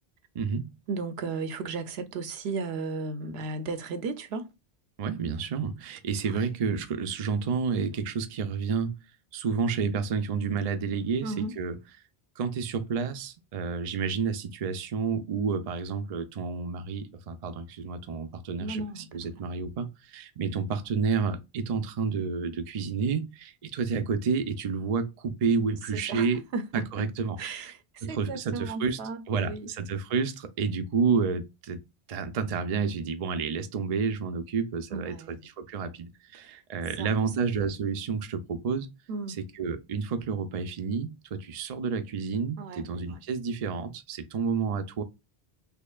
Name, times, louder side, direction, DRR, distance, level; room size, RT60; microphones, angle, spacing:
voice 1, 0.3-0.7 5.0-9.0 9.3-11.8 12.4-26.4 26.7-27.7 28.0-29.0 29.3-31.8 32.1-38.9 39.3-45.0, right 5 dB, 50° right, 0.5 m, -30 dB
voice 2, 0.9-4.5 6.3-6.4 11.2-11.5 18.6-19.2 26.1-26.3 26.5-27.0 27.4-29.7 34.9-35.4 37.0-37.1 39.1-39.4 42.6-43.2, right 4 dB, 75° right, 0.8 m, -35 dB
4.4 x 2.8 x 2.3 m
omnidirectional pair, 1.1 m